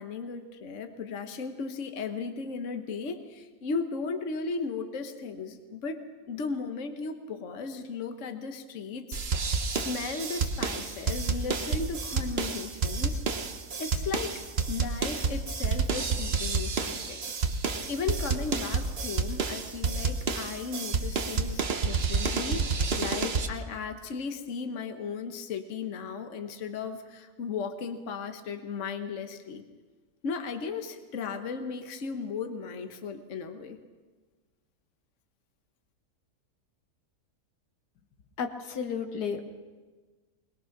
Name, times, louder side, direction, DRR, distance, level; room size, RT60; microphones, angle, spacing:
voice 1, 0.0-6.0 6.3-9.2 9.7-13.2 13.8-17.2 17.9-29.6 30.2-33.8, left 5 dB, 50° left, 7 dB, 1.5 m, -36 dB
sound 1, 9.1-23.5, right 4 dB, 45° right, 1.1 m, -29 dB
voice 2, 38.4-39.5, left 6 dB, 80° left, 6 dB, 1.8 m, -32 dB
22.0 x 20.5 x 5.9 m, 1.3 s
omnidirectional pair, 1.7 m